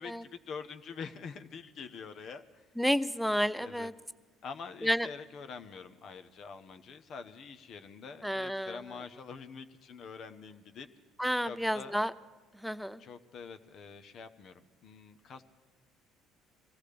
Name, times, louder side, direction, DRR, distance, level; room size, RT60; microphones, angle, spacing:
voice 1, 0.0-2.6 3.6-3.9 4.4-10.9 11.4-12.0 13.0-15.4, left 5 dB, 55° left, 9 dB, 0.9 m, -45 dB
voice 2, 2.8-3.9 4.8-5.1 8.2-8.8 11.2-12.1 12.5-13.0, equal, ahead, 14 dB, 0.5 m, -30 dB
24.0 x 15.5 x 3.4 m, 1.3 s
supercardioid pair, 80°, 0 cm